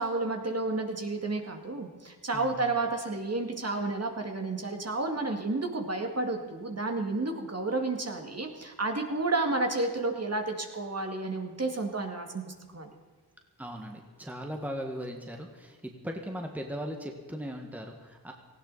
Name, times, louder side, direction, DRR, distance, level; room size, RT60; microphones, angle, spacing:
voice 1, 0.0-12.9, right 2 dB, 35° right, 3 dB, 2.1 m, -31 dB
voice 2, 2.3-2.7 13.6-18.3, equal, 5° right, 2 dB, 1.6 m, -38 dB
18.0 x 16.0 x 4.1 m, 1.5 s
wide cardioid pair, 85°, 43 cm